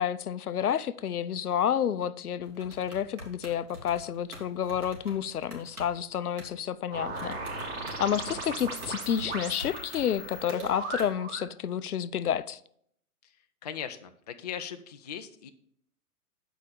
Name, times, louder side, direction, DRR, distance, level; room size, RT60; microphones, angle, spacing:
voice 1, 0.0-7.4 8.0-12.6, left 9 dB, 75° left, 0.6 m, -30 dB
sound 1, 2.4-6.7 7.1-11.1, right 1 dB, 70° right, 2.9 m, -46 dB
sound 2, 6.9-11.5, right 2 dB, 45° right, 2.5 m, -37 dB
voice 2, 13.6-15.5, left 8 dB, 30° left, 0.4 m, -39 dB
7.3 x 5.0 x 6.9 m
figure-of-eight pair, 120°, 45 cm